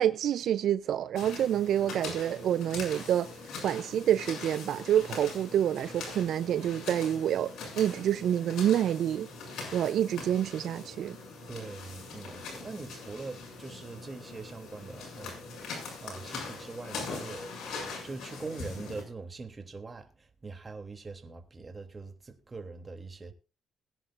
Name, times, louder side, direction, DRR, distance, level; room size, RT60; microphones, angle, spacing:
voice 1, 0.0-3.3 3.6-9.3 9.7-11.2, right 10 dB, 70° right, 0.6 m, -27 dB
sound 1, 1.2-19.0, left 4 dB, 75° left, 7.4 m, -42 dB
voice 2, 11.5-15.7 16.0-17.4 18.0-23.3, right 3 dB, 30° right, 3.0 m, -43 dB
21.5 x 10.0 x 2.6 m
cardioid pair, 90°, 0 cm